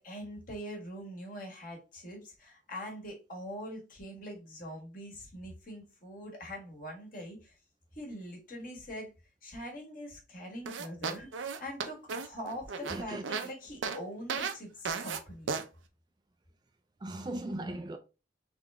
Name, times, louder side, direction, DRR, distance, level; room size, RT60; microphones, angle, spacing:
voice 1, 0.0-7.6 7.9-9.1 9.4-15.5, equal, 45° left, 1.6 m, -43 dB
sound 1, 10.7-13.5 13.8-14.0 14.3-14.5 14.9-15.2 15.5-15.6, right 5 dB, 85° right, 0.6 m, -34 dB
voice 2, 12.8-13.2 17.0-18.0, right 1 dB, 20° right, 0.3 m, -37 dB
3.7 x 3.4 x 3.5 m
head